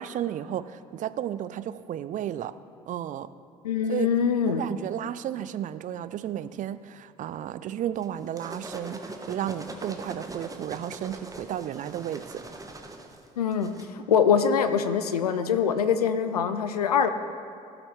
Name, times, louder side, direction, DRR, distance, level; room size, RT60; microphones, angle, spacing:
voice 1, 0.0-2.5 2.9-3.3 3.9-4.1 4.5-12.4, right 11 dB, 45° right, 14 dB, 0.4 m, -33 dB
voice 2, 3.6-4.6 13.4-17.1, left 7 dB, 85° left, 10 dB, 0.4 m, -24 dB
sound 1, 8.0-13.9, right 2 dB, 15° right, 1.0 m, -41 dB
17.0 x 5.9 x 3.2 m, 2.4 s
figure-of-eight pair, 50°, 19 cm